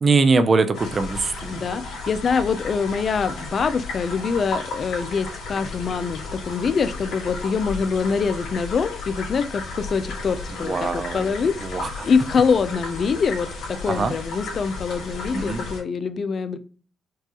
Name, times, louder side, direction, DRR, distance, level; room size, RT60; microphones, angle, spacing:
voice 1, 0.0-1.6 10.6-11.3 11.6-12.1 13.9-14.1 15.3-15.6, right 4 dB, 40° right, 10 dB, 0.5 m, -22 dB
sound 1, 0.7-15.8, left 3 dB, 80° left, 1.8 m, -34 dB
voice 2, 1.5-16.6, left 5 dB, 50° left, 12 dB, 0.4 m, -24 dB
4.6 x 2.4 x 2.9 m, 0.39 s
cardioid pair, 90°, 0 cm